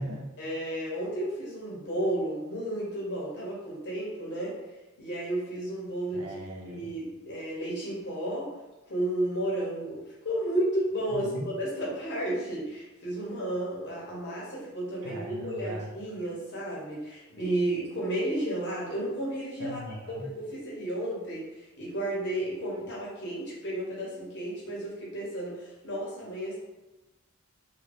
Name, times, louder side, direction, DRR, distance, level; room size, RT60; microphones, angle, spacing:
voice 1, 0.4-4.5 5.0-6.3 6.6-8.5 8.9-19.8 20.2-26.6, right 1 dB, 50° left, -5 dB, 1.0 m, -32 dB
voice 2, 6.1-6.9 11.1-11.5 15.0-15.9 19.6-20.3, equal, 70° right, 0 dB, 0.7 m, -38 dB
2.7 x 2.5 x 3.3 m, 1.0 s
head